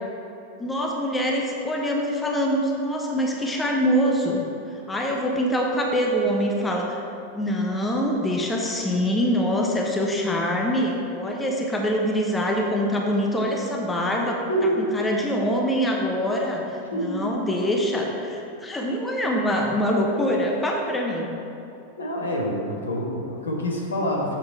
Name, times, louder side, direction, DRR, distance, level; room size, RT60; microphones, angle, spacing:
voice 1, 0.6-4.5 4.9-7.0 7.3-14.4 14.8-21.4, equal, 10° left, -1 dB, 0.9 m, -24 dB
voice 2, 14.5-14.9 16.9-17.4 22.0-24.4, equal, 75° left, -1 dB, 1.3 m, -26 dB
7.3 x 5.4 x 4.4 m, 2.8 s
figure-of-eight pair, 90°, 0 cm